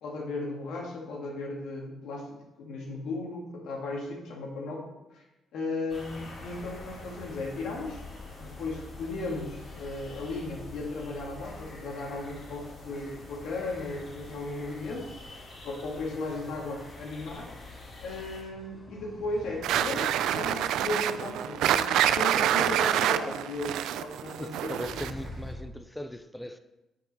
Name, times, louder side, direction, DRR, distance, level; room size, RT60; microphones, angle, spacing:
voice 1, 0.0-5.2 5.5-8.0 8.4-15.1 15.6-17.5 18.0-25.0, left 2 dB, 80° left, -1 dB, 2.0 m, -36 dB
sound 1, 5.9-18.4, left 2 dB, 50° left, 2.7 m, -46 dB
sound 2, 10.8-25.6, left 1 dB, 20° left, 1.4 m, -51 dB
sound 3, 19.6-25.3, right 11 dB, 85° right, 0.3 m, -27 dB
voice 2, 24.3-26.6, equal, 5° left, 9 dB, 0.4 m, -39 dB
6.9 x 5.4 x 5.3 m, 0.99 s
cardioid pair, 90°, 0 cm